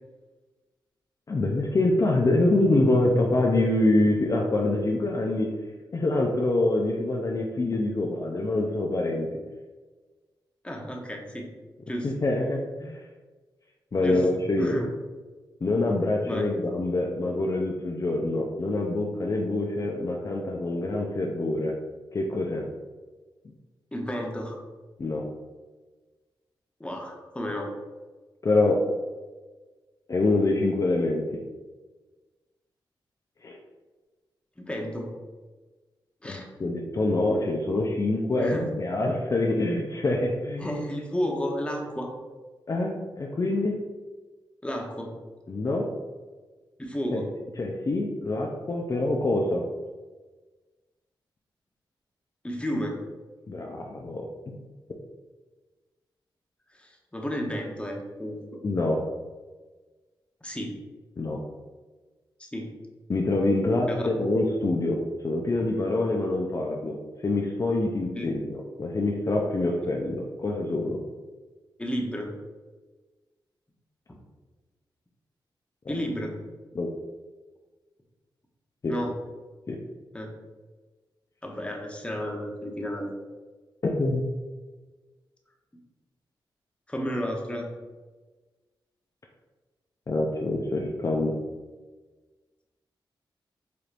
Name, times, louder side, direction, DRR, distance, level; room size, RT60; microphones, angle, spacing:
voice 1, 1.3-5.5 5.9-9.3 12.0-13.0 13.9-14.7 15.6-21.7 22.1-22.6 25.0-25.2 28.4-28.8 30.1-31.2 33.4-33.6 36.3-40.7 42.7-43.8 45.5-45.9 47.1-47.2 47.6-49.6 53.5-54.3 58.6-59.0 61.2-61.4 63.1-65.0 65.2-71.0 76.7-76.9 78.8-78.9 79.7-79.8 83.9-84.2 90.1-91.3, left 2 dB, 40° left, 0 dB, 0.5 m, -25 dB
voice 2, 10.6-11.5 11.9-12.1 14.0-14.3 14.6-14.9 16.3-16.5 23.9-24.6 26.8-27.7 34.6-35.1 36.2-36.5 38.4-38.7 40.6-42.1 44.6-45.1 46.8-47.3 52.4-53.0 56.7-58.4 60.4-60.8 62.4-62.7 63.9-64.1 68.2-68.3 71.8-72.3 75.9-76.4 78.9-79.1 80.1-80.3 81.4-83.1 86.9-87.7, equal, 15° left, 0 dB, 0.8 m, -32 dB
4.9 x 2.9 x 2.5 m, 1.3 s
cardioid pair, 65°, 9 cm